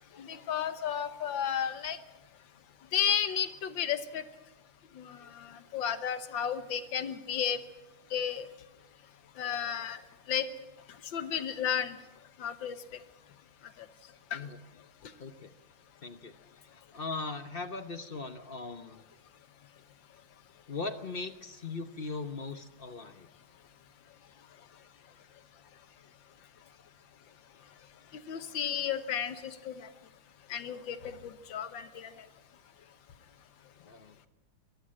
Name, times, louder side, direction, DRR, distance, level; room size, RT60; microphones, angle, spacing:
voice 1, 0.2-2.0 2.9-4.2 5.0-7.6 8.1-8.5 9.4-10.0 10.3-10.5 11.1-12.0 12.4-12.8 14.3-14.4 28.3-29.9 30.5-31.0 31.2-32.1, left 8 dB, 65° left, 11 dB, 1.8 m, -33 dB
voice 2, 15.2-15.5 16.0-16.3 16.7-19.0 20.7-23.3 33.8-34.3, left 3 dB, 45° left, 9 dB, 0.7 m, -39 dB
22.0 x 14.0 x 8.8 m, 1.0 s
omnidirectional pair, 2.3 m